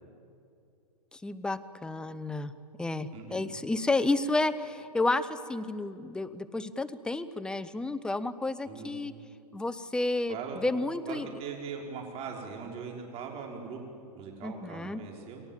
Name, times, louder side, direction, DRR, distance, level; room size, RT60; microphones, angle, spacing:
voice 1, 1.1-2.5 2.8-9.1 9.5-11.3 14.4-15.0, left 2 dB, 5° left, 14 dB, 0.8 m, -31 dB
voice 2, 3.1-3.4 8.7-8.9 10.3-10.6 11.1-13.8 14.1-15.4, right 6 dB, 30° right, 1 dB, 5.6 m, -40 dB
29.0 x 22.5 x 7.5 m, 2.5 s
hypercardioid pair, 135°, 20 cm